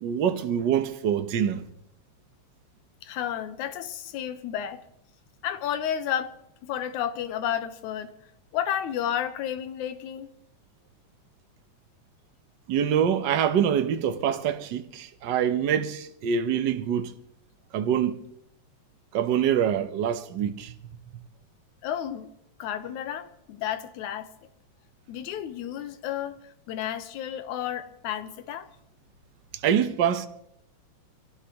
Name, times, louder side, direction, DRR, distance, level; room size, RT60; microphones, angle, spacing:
voice 1, 0.0-1.7 12.7-17.1 17.7-18.1 19.1-20.7 29.5-30.3, right 8 dB, 75° right, 1.0 m, -25 dB
voice 2, 3.0-4.8 5.4-8.1 8.5-10.3 21.8-22.3 22.6-24.3 25.1-26.4 26.7-28.7, left 10 dB, 85° left, 2.4 m, -32 dB
25.0 x 17.5 x 3.0 m
omnidirectional pair, 3.3 m